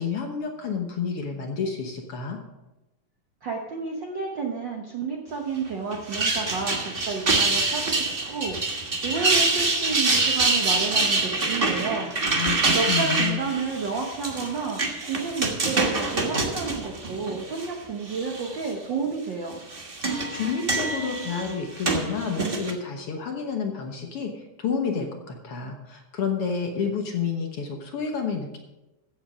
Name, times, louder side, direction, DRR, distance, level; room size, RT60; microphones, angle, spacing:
voice 1, 0.0-2.4 12.3-13.4 20.0-28.6, left 6 dB, 60° left, 3 dB, 1.7 m, -30 dB
voice 2, 3.4-12.1 12.7-19.6, right 4 dB, 65° right, 1 dB, 1.2 m, -31 dB
sound 1, 5.9-17.7 18.1-18.7 19.5-22.7, right 3 dB, 80° right, 0.5 m, -25 dB
15.5 x 8.0 x 5.0 m, 1.0 s
omnidirectional pair, 3.6 m